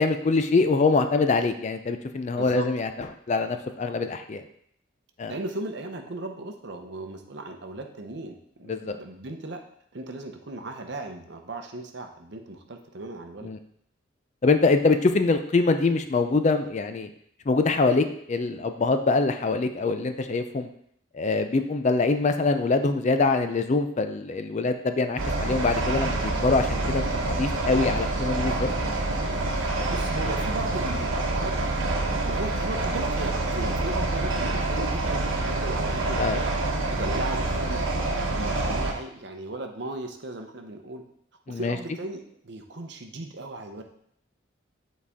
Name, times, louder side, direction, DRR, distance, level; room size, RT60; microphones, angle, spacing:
voice 1, 0.0-2.9 3.3-4.4 5.2-5.3 8.7-9.0 13.4-13.6 14.4-17.1 17.5-20.7 21.1-28.7 36.2-36.4 41.5-41.8, left 3 dB, 35° left, 8 dB, 0.4 m, -24 dB
voice 2, 2.4-2.7 5.3-9.6 9.9-13.5 29.9-31.5 32.2-36.5 36.9-41.0 41.5-43.8, right 2 dB, 55° right, 5 dB, 0.7 m, -36 dB
sound 1, 25.2-38.9, right 2 dB, 75° right, 1.0 m, -27 dB
7.3 x 4.1 x 3.5 m, 0.69 s
head